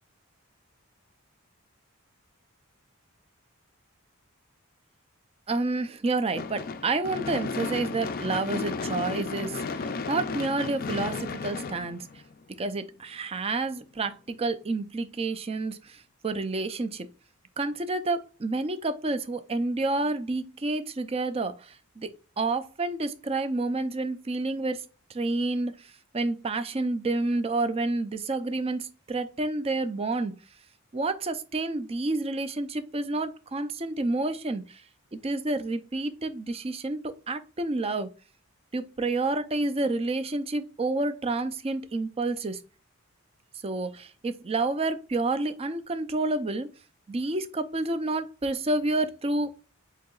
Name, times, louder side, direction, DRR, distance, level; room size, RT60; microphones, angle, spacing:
voice 1, 5.5-12.1 12.6-17.1 17.6-22.1 22.4-25.9 26.1-30.4 30.9-34.8 35.1-37.0 37.3-38.1 38.7-42.6 43.6-46.7 47.1-49.6, right 2 dB, 25° right, 0.5 m, -29 dB
Gunshot gunfire / Fireworks, 6.4-12.6, left 4 dB, 40° left, 0.4 m, -33 dB
7.6 x 2.8 x 2.4 m
head